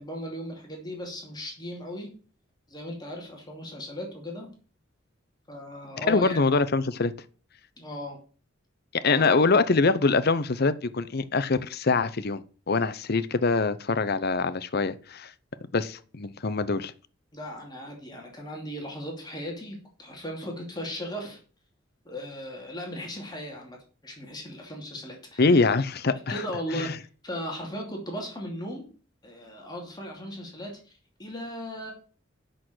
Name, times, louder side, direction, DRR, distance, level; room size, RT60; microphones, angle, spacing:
voice 1, 0.0-2.1 2.7-4.5 5.5-6.4 7.8-8.2 9.0-9.4 17.3-21.4 22.0-23.8 24.0-25.6 26.3-26.9 27.2-28.9 29.2-30.9 31.2-31.9, equal, 20° left, 0 dB, 2.7 m, -37 dB
voice 2, 6.1-7.1 8.9-12.4 12.7-15.3 15.7-16.9 25.4-26.4 26.7-27.0, left 3 dB, 50° left, 14 dB, 0.7 m, -24 dB
8.4 x 6.4 x 7.7 m, 0.39 s
head